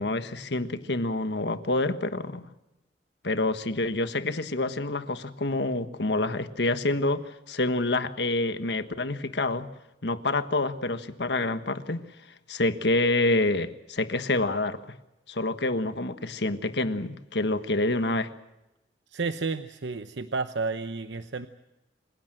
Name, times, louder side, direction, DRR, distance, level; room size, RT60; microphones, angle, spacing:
voice 1, 0.0-2.4 3.2-7.2 7.5-9.7 10.0-12.0 12.5-15.0 15.3-18.3, left 2 dB, 70° left, 11 dB, 1.5 m, -27 dB
voice 2, 19.1-21.5, right 4 dB, 85° right, 10 dB, 0.9 m, -31 dB
27.0 x 16.5 x 7.7 m, 0.96 s
head